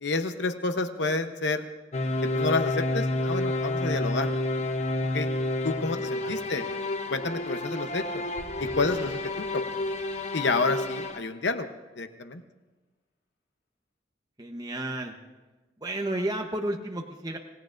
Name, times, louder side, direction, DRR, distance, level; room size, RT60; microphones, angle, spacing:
voice 1, 0.0-1.6 2.3-4.3 5.1-5.3 5.6-6.7 7.1-8.2 8.6-9.8 10.3-11.7 12.0-12.4, left 3 dB, 75° left, 8 dB, 0.9 m, -29 dB
sound 1, 1.9-11.2, left 2 dB, 40° left, 0.9 m, -30 dB
voice 2, 5.9-6.8 14.4-15.2 15.8-17.4, right 1 dB, 20° right, 2 dB, 1.0 m, -33 dB
sound 2, 8.0-11.2, left 1 dB, 60° left, 2.8 m, -48 dB
26.0 x 18.0 x 2.6 m, 1.2 s
head